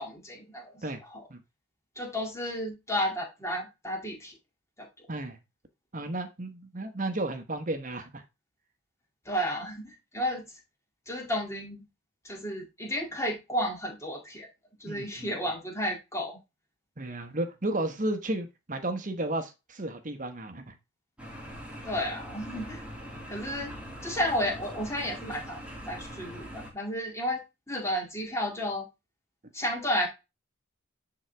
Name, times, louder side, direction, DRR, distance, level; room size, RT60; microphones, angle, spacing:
voice 1, 0.0-0.8 1.1-1.2 2.0-4.3 4.8-5.1 9.3-10.4 11.1-11.8 12.2-14.5 14.8-16.4 21.8-22.8 23.3-23.7 24.0-25.6 25.9-27.4 27.7-28.8 29.5-30.1, equal, 15° left, 1 dB, 2.0 m, -32 dB
voice 2, 5.9-8.2 14.9-15.3 17.0-20.7, right 1 dB, 40° right, 8 dB, 1.1 m, -33 dB
sound 1, 21.2-26.7, equal, 5° right, 2.5 m, -42 dB
9.8 x 4.0 x 3.4 m, 0.25 s
head